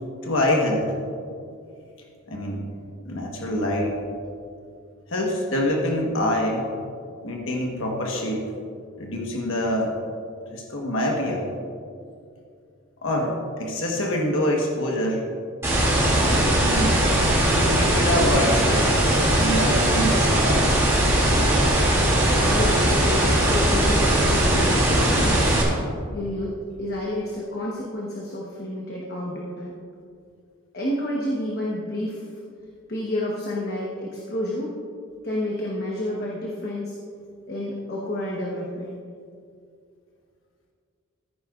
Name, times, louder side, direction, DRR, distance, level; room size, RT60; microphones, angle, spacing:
voice 1, 0.2-0.9 2.3-2.6 3.0-4.0 5.1-6.7 7.2-8.5 9.0-9.9 10.5-11.5 13.0-15.2 16.2-16.9 17.5-18.9 19.3-20.7, left 1 dB, 70° left, 0 dB, 1.3 m, -25 dB
sound 1, 15.6-25.6, right 1 dB, 15° right, 2.4 m, -20 dB
voice 2, 22.5-25.5 26.1-29.7 30.7-32.3 32.9-34.7 35.2-37.0 37.5-39.0, left 1 dB, 50° left, -3 dB, 1.2 m, -30 dB
14.5 x 9.4 x 2.5 m, 2.3 s
head